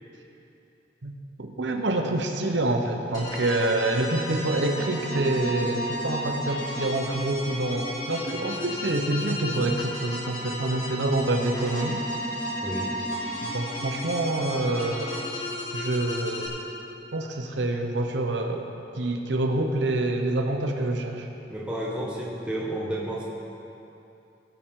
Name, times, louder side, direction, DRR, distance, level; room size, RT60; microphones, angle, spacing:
voice 1, 1.0-12.0 13.4-15.2 15.7-16.5 17.1-18.7 18.9-21.3, right 2 dB, 90° right, 4 dB, 1.0 m, -27 dB
sound 1, 3.1-16.5, left 1 dB, 20° left, 2.0 m, -33 dB
voice 2, 12.6-13.0 21.5-23.3, right 1 dB, 5° right, -6 dB, 1.5 m, -31 dB
18.5 x 6.9 x 3.9 m, 2.8 s
head